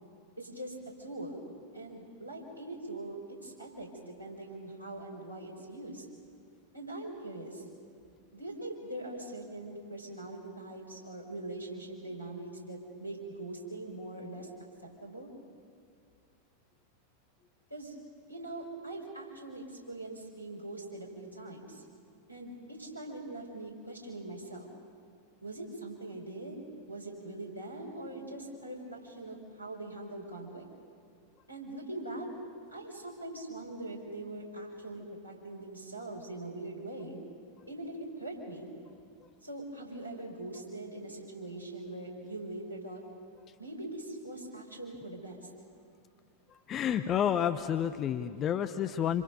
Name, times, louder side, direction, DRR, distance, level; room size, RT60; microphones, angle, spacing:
voice 1, 0.4-1.4 1.7-6.1 6.7-7.6 8.3-14.5 15.0-15.3 17.7-17.9 18.3-21.8 22.3-24.7 25.4-30.6 31.5-32.3 32.7-37.2 37.7-38.7 39.4-43.0 43.6-45.5, right 2 dB, 90° left, 1 dB, 5.2 m, -42 dB
voice 2, 46.5-49.2, left 9 dB, 30° left, 10 dB, 0.8 m, -30 dB
27.5 x 26.5 x 5.5 m, 2.3 s
figure-of-eight pair, 90°, 0 cm